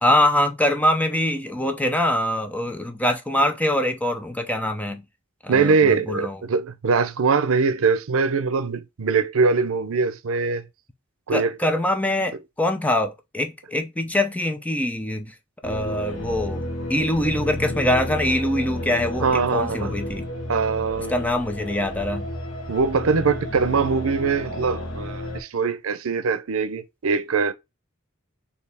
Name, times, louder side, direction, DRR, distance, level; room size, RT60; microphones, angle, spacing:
voice 1, 0.0-5.0 5.4-6.4 11.3-15.3 15.6-16.6 16.9-20.3 21.1-22.3, left 1 dB, 5° left, 0.5 m, -23 dB
voice 2, 5.5-10.6 11.3-11.6 19.2-20.0 20.5-21.1 22.7-27.5, right 5 dB, 85° right, 0.5 m, -22 dB
sound 1, 15.6-25.4, left 1 dB, 75° left, 1.1 m, -32 dB
4.5 x 2.8 x 3.4 m
head